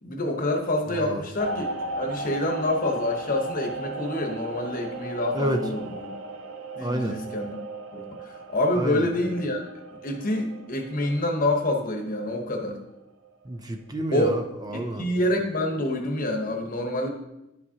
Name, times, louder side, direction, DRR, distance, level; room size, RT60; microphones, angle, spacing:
voice 1, 0.0-1.7 2.0-6.1 6.7-7.6 7.9-8.0 8.5-9.6 10.0-12.8 14.1-14.4 14.7-17.1, left 1 dB, 45° left, 3 dB, 1.0 m, -27 dB
voice 2, 0.9-1.3 5.3-5.7 6.8-7.2 8.7-9.1 13.5-15.0, right 1 dB, 20° right, 6 dB, 0.4 m, -29 dB
sound 1, 1.4-12.7 13.1-13.4, right 2 dB, 85° right, 0.5 m, -37 dB
10.5 x 5.1 x 2.8 m, 0.91 s
head